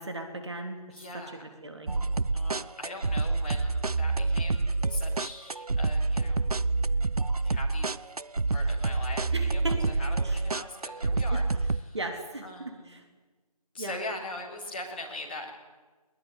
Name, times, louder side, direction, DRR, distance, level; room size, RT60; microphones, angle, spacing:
voice 1, 0.0-0.8 1.1-1.9 9.3-9.8 10.2-10.4 11.3-11.4 11.9-13.0 13.8-14.0, right 2 dB, 45° right, 4 dB, 3.3 m, -37 dB
voice 2, 0.9-1.5 2.3-6.4 7.4-7.9 8.5-12.0 12.4-13.0 13.7-15.5, left 2 dB, 15° left, -3 dB, 3.5 m, -41 dB
sound 1, 1.9-11.8, right 3 dB, 70° right, 0.9 m, -27 dB
21.5 x 21.0 x 9.9 m, 1.3 s
figure-of-eight pair, 175°, 20 cm